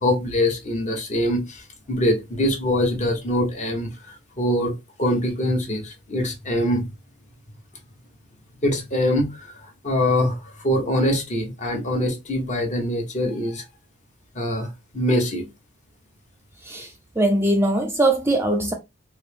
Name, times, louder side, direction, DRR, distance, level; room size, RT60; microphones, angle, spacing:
voice 1, 0.0-4.7 5.0-6.9 8.6-13.6 14.3-14.7 14.9-15.5, left 1 dB, 35° left, 0.9 m, -23 dB
voice 2, 16.6-18.7, right 1 dB, 10° right, 0.3 m, -21 dB
4.1 x 2.0 x 3.3 m
head